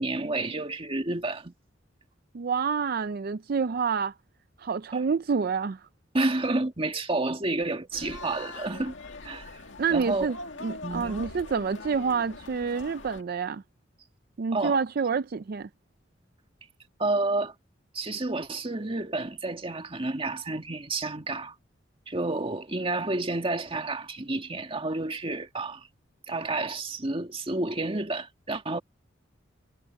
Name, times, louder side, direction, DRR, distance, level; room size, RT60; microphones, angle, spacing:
voice 1, 0.0-1.5 4.9-5.0 6.1-8.9 9.2-9.6 9.9-10.3 10.8-11.3 14.5-14.8 17.0-17.5 17.9-21.5 22.1-25.9 26.3-28.8, right 2 dB, 30° right, 1.9 m, -30 dB
voice 2, 2.3-4.1 4.6-5.8 9.8-13.6 14.4-15.7, right 5 dB, 55° right, 0.4 m, -28 dB
sound 1, 7.9-13.2, left 3 dB, 85° left, 1.9 m, -42 dB
head